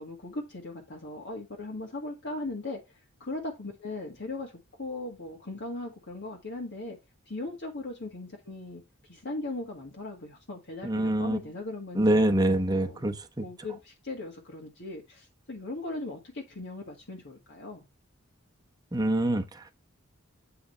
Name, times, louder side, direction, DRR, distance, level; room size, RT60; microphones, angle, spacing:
voice 1, 0.0-2.8 3.2-4.5 4.8-7.0 7.3-8.8 9.1-12.3 12.8-13.0 13.4-17.8, left 2 dB, 60° left, 1.8 m, -38 dB
voice 2, 10.8-11.4 11.9-13.4 18.9-19.7, right 1 dB, 20° right, 0.9 m, -25 dB
8.3 x 4.9 x 3.2 m
head